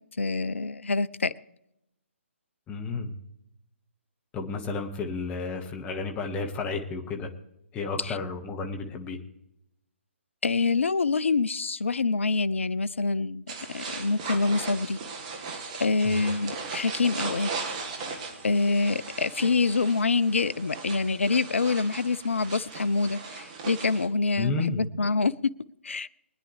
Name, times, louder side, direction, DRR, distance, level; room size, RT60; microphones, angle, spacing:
voice 1, 0.2-1.3 8.0-8.2 10.4-13.4 13.7-15.0 15.8-17.5 18.4-25.3 25.8-26.1, left 4 dB, 70° left, 0.5 m, -26 dB
voice 2, 2.7-3.2 4.3-7.3 7.7-9.2 16.1-16.2 24.4-24.8, left 4 dB, 15° left, 1.4 m, -32 dB
sound 1, 13.5-24.1, right 4 dB, 35° right, 1.6 m, -38 dB
sound 2, 15.0-21.6, equal, 60° right, 4.4 m, -53 dB
24.0 x 9.9 x 3.3 m
figure-of-eight pair, 135°, 7 cm